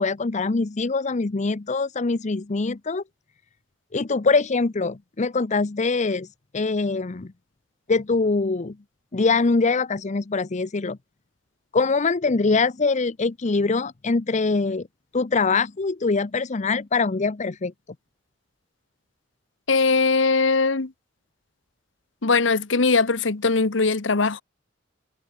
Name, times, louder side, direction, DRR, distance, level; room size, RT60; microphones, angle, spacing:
voice 1, 0.0-3.0 3.9-6.3 6.5-7.3 7.9-8.7 9.1-11.0 11.7-14.9 15.1-17.7, left 4 dB, 40° left, 0.6 m, -23 dB
voice 2, 19.7-20.9 22.2-24.4, left 4 dB, 70° left, 1.2 m, -20 dB
head